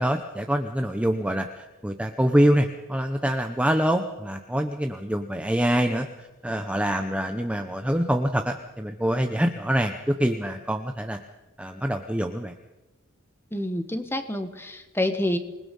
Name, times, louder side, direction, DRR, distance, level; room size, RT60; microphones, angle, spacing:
voice 1, 0.0-6.1 6.4-11.2 11.6-12.5, equal, 5° right, 5 dB, 0.9 m, -25 dB
voice 2, 13.5-15.4, left 1 dB, 10° left, 7 dB, 1.7 m, -27 dB
26.5 x 20.5 x 5.5 m, 1.0 s
head